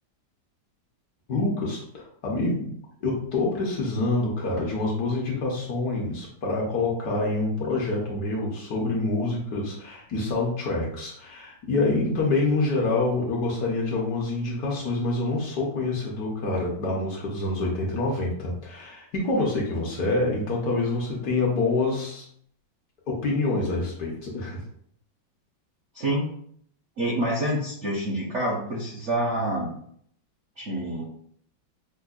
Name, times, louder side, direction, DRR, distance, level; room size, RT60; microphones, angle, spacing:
voice 1, 1.3-2.7 3.0-22.2 23.1-24.6, left 2 dB, 65° left, -2 dB, 1.1 m, -26 dB
voice 2, 27.0-29.7 30.6-31.0, right 1 dB, 65° right, -4 dB, 0.7 m, -27 dB
5.3 x 2.1 x 2.3 m, 0.64 s
omnidirectional pair, 2.1 m